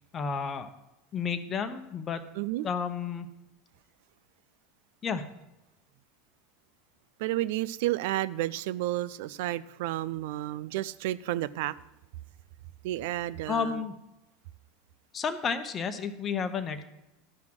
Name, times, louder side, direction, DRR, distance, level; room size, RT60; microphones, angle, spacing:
voice 1, 0.1-0.7 1.1-2.2 2.6-3.3 5.0-5.3 13.5-13.9 15.1-16.8, left 6 dB, 35° left, 1.0 m, -31 dB
voice 2, 2.4-2.7 7.2-11.7 12.8-13.8, right 15 dB, 65° right, 0.4 m, -31 dB
12.5 x 5.9 x 6.0 m
hypercardioid pair, 85°, 0 cm